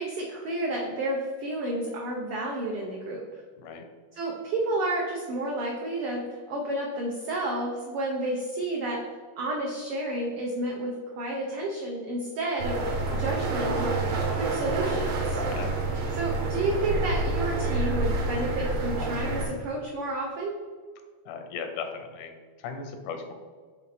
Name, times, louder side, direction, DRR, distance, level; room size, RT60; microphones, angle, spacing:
voice 1, 0.0-3.4 4.1-9.0 9.4-14.0 14.3-15.4 16.1-20.5, right 1 dB, 85° right, -1 dB, 1.2 m, -31 dB
sound 1, 12.6-19.5, right 2 dB, 70° right, 2.1 m, -28 dB
voice 2, 21.3-23.3, left 5 dB, 85° left, 6 dB, 2.1 m, -37 dB
5.6 x 4.1 x 4.1 m, 1.5 s
omnidirectional pair, 3.5 m